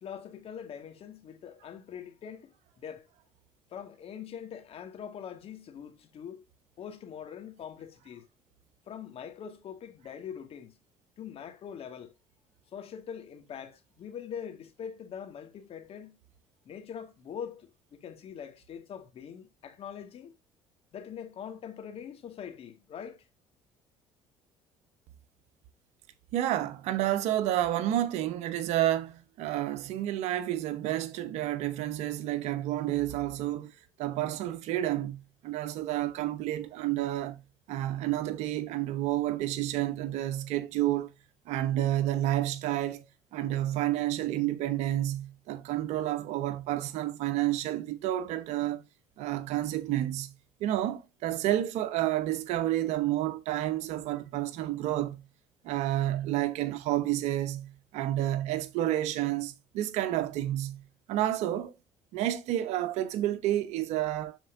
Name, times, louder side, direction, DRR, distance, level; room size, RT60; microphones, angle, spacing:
voice 1, 0.0-3.1 3.7-6.4 6.8-8.3 8.9-10.8 11.2-12.1 12.7-16.2 16.7-17.7 18.0-20.3 20.9-23.2, left 8 dB, 55° left, 1.9 m, -43 dB
voice 2, 26.3-33.7 34.0-37.4 37.7-41.1 41.5-43.0 43.3-48.8 49.2-50.3 50.6-55.2 55.6-61.7 62.1-64.4, right 13 dB, 70° right, 0.9 m, -30 dB
13.0 x 4.6 x 2.6 m
hypercardioid pair, 65°, 12 cm